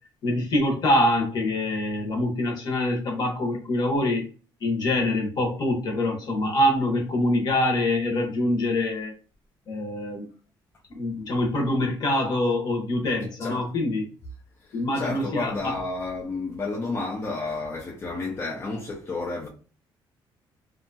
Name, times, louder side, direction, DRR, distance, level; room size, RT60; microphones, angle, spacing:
voice 1, 0.2-4.2 4.6-9.1 9.7-10.2 10.9-14.1 14.7-15.8, left 1 dB, 45° left, 0.9 m, -25 dB
voice 2, 14.7-19.5, left 3 dB, 25° left, 0.5 m, -31 dB
2.7 x 2.3 x 2.6 m
cardioid pair, 150°, 9 cm